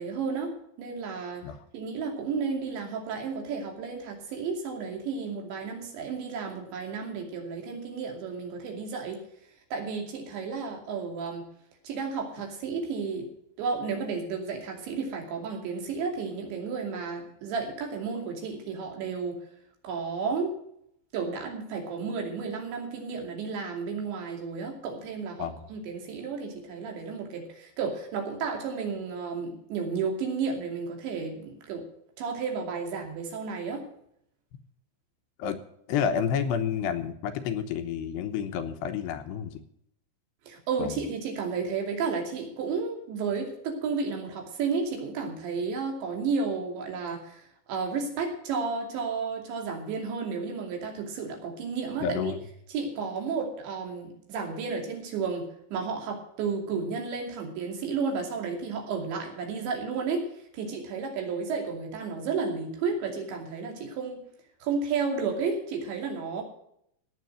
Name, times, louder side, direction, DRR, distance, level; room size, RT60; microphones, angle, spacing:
voice 1, 0.0-9.2 9.7-11.5 11.8-13.3 13.6-19.4 19.8-20.6 21.1-31.8 32.2-33.9 40.4-52.3 52.7-64.2 64.6-66.4, right 5 dB, 75° right, 2 dB, 4.9 m, -32 dB
voice 2, 35.9-39.6 40.8-40.9 52.0-52.4, left 7 dB, 75° left, 7 dB, 2.9 m, -30 dB
17.5 x 7.8 x 6.3 m, 0.74 s
omnidirectional pair, 5.3 m